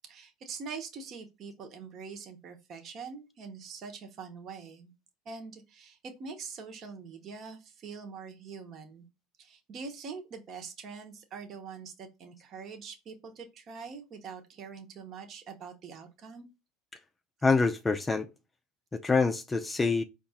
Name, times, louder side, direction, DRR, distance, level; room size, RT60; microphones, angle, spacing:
voice 1, 0.1-4.9 5.2-9.1 9.4-16.5, right 5 dB, 45° right, 1.0 m, -44 dB
voice 2, 17.4-18.3 18.9-20.0, left 4 dB, 20° left, 0.5 m, -26 dB
4.6 x 2.5 x 4.1 m
hypercardioid pair, 85°, 0 cm